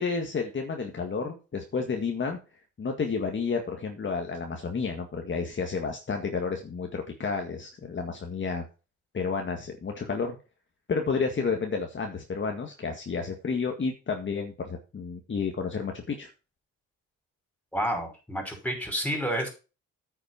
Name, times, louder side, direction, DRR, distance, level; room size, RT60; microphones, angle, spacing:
voice 1, 0.0-2.4 2.8-8.6 9.1-10.4 10.9-16.3, left 5 dB, 40° left, 3 dB, 1.9 m, -31 dB
voice 2, 17.7-19.5, equal, 5° left, 4 dB, 5.3 m, -30 dB
9.3 x 6.6 x 6.0 m, 0.32 s
cardioid pair, 90°, 30 cm